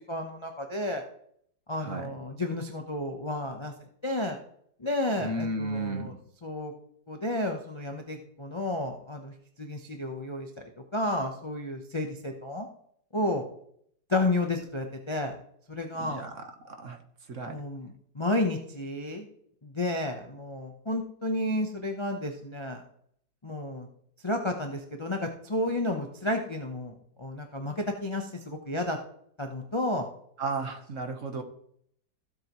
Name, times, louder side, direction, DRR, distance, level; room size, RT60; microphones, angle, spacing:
voice 1, 0.1-1.0 1.7-3.7 4.0-4.4 4.8-6.1 6.4-6.7 7.1-10.6 10.9-12.7 13.1-13.4 14.1-15.4 15.7-16.2 17.5-19.3 19.6-22.8 23.4-23.9 24.2-29.0 29.4-30.1, left 1 dB, 25° left, 3 dB, 0.6 m, -31 dB
voice 2, 1.8-2.1 5.2-6.1 16.0-17.0 17.3-17.6 30.4-31.4, right 2 dB, 45° right, 5 dB, 1.4 m, -34 dB
15.5 x 8.0 x 3.1 m, 0.68 s
omnidirectional pair, 1.9 m